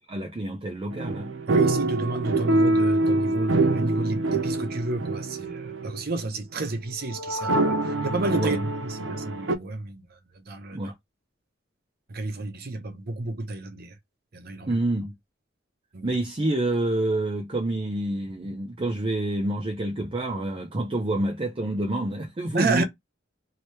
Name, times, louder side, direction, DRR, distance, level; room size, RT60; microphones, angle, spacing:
voice 1, 0.1-1.3 8.3-8.6 10.7-10.9 14.7-15.1 16.0-22.8, right 1 dB, 30° right, 0.6 m, -28 dB
sound 1, 0.9-6.0 7.1-9.6, right 2 dB, 85° right, 0.6 m, -25 dB
voice 2, 1.5-10.9 12.1-14.0 14.3-14.8 15.9-16.1 22.5-22.8, right 2 dB, 55° right, 0.8 m, -31 dB
2.9 x 2.8 x 3.1 m
head